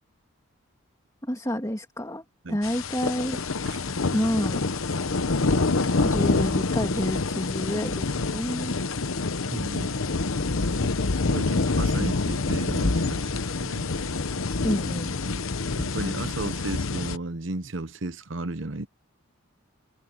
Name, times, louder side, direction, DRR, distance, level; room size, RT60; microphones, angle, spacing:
voice 1, 1.2-3.4 4.1-4.6 6.0-8.7 14.6-15.2, equal, 15° left, 2.8 m, -29 dB
sound 1, 2.6-17.2, left 3 dB, 75° left, 1.0 m, -26 dB
voice 2, 9.5-10.1 11.3-13.9 15.8-18.9, right 2 dB, 60° right, 1.0 m, -34 dB
head